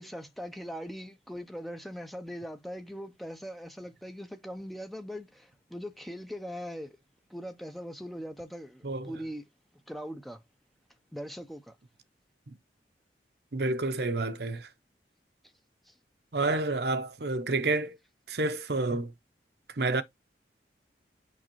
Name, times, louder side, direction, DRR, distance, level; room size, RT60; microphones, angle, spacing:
voice 1, 0.0-7.0 7.3-9.4 9.9-10.4 11.1-11.8 15.8-15.9, equal, ahead, 0.7 m, -41 dB
voice 2, 13.5-14.7 16.3-18.0 18.3-19.1 19.7-20.0, right 2 dB, 60° right, 0.8 m, -29 dB
6.4 x 5.4 x 3.0 m
head